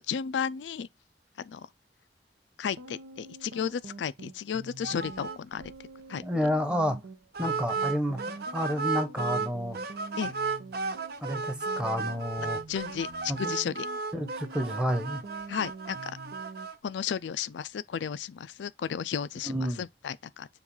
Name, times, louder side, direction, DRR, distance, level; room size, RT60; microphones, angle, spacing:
voice 1, 0.1-0.9 1.4-1.7 2.6-5.6 6.1-6.2 10.2-10.3 12.7-13.9 15.5-16.1 16.8-20.5, left 7 dB, 90° left, 0.4 m, -33 dB
sound 1, 2.8-16.7, right 2 dB, 90° right, 0.9 m, -46 dB
sound 2, 4.8-5.4 5.6-5.8 6.1-6.2 7.3-9.5 9.7-16.8, right 4 dB, 60° right, 0.7 m, -34 dB
voice 2, 6.2-7.0 7.4-9.8 11.2-12.6 13.3-13.5 14.1-15.2 19.5-19.8, equal, 5° right, 0.8 m, -30 dB
7.0 x 2.5 x 5.4 m
head